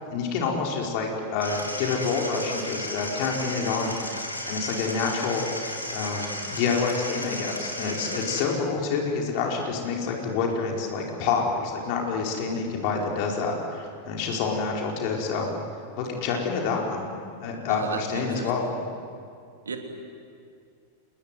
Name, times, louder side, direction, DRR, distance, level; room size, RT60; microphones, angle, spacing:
voice 1, 0.0-5.4 5.9-15.5 16.0-17.0 17.3-18.7, left 5 dB, 45° left, 0 dB, 5.0 m, -28 dB
sound 1, 1.4-8.4, left 1 dB, 85° left, 3.1 m, -34 dB
voice 2, 17.7-18.8 19.6-19.8, right 4 dB, 70° right, 3 dB, 3.2 m, -35 dB
28.0 x 20.5 x 9.5 m, 2.3 s
figure-of-eight pair, 90°, 0 cm